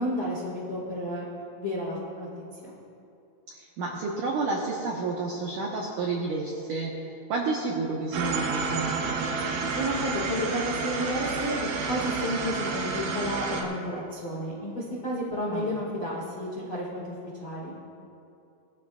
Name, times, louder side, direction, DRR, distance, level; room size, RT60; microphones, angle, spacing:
voice 1, 0.0-2.7 9.7-17.0 17.4-17.8, equal, 70° left, -6 dB, 0.9 m, -32 dB
voice 2, 3.5-6.9 7.3-9.0 15.5-15.8, right 3 dB, 90° right, -2 dB, 1.8 m, -30 dB
sound 1, 8.1-13.6, right 4 dB, 75° right, 3.4 m, -30 dB
20.5 x 15.0 x 2.4 m, 2.6 s
omnidirectional pair, 5.4 m